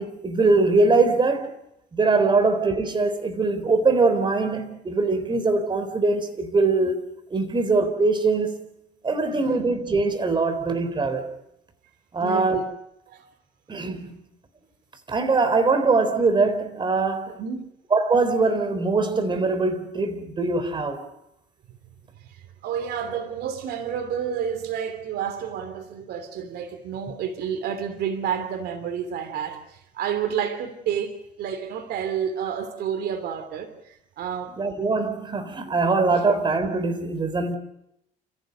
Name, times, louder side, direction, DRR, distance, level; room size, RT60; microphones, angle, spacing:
voice 1, 0.0-1.5 1.9-7.0 7.3-8.7 9.0-11.3 12.1-12.6 13.7-14.2 15.1-17.4 17.9-21.0 34.6-37.6, right 3 dB, 30° right, 3.9 m, -22 dB
voice 2, 9.3-9.7 12.2-12.7 13.1-13.2 17.3-17.6 21.7-21.8 22.2-34.5 35.8-36.2, right 8 dB, 70° right, 3.0 m, -30 dB
29.0 x 15.0 x 8.0 m
cardioid pair, 110°, 17 cm